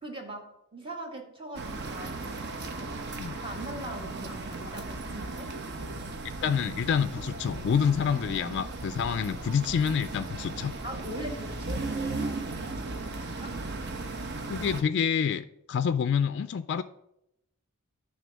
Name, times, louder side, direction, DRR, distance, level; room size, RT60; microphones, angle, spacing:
voice 1, 0.0-2.2 2.8-3.0 3.3-5.5 10.8-13.6, right 1 dB, 25° right, 3 dB, 1.4 m, -41 dB
sound 1, 1.5-14.8, right 2 dB, 55° right, 0.9 m, -36 dB
voice 2, 6.4-10.7 14.5-16.8, left 7 dB, 55° left, 12 dB, 0.3 m, -27 dB
10.0 x 3.6 x 6.3 m, 0.81 s
head